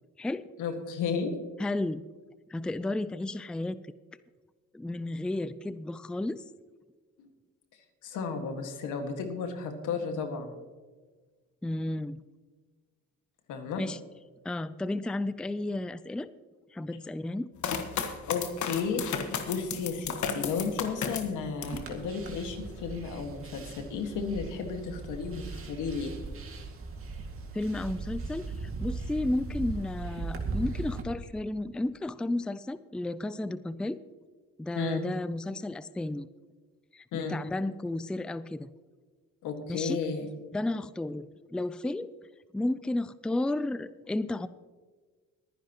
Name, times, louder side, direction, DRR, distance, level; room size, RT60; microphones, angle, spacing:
voice 1, 0.6-1.3 7.2-7.3 8.0-10.5 13.5-13.8 18.3-26.1 34.8-35.0 37.1-37.4 39.4-40.3, left 5 dB, 90° left, 5 dB, 1.8 m, -33 dB
voice 2, 1.6-2.0 2.5-3.8 4.7-6.4 11.6-12.2 13.8-14.0 14.4-16.3 16.7-17.5 27.5-34.0 34.6-36.3 36.9-38.7 39.7-40.0 40.5-42.1 42.5-44.5, left 2 dB, 5° left, 15 dB, 0.4 m, -32 dB
sound 1, 17.6-21.9 22.3-23.0, left 7 dB, 70° left, 1.4 m, -33 dB
sound 2, 21.6-31.0, right 3 dB, 45° right, 2.2 m, -38 dB
22.5 x 10.0 x 3.0 m, 1.4 s
cardioid pair, 90°, 30 cm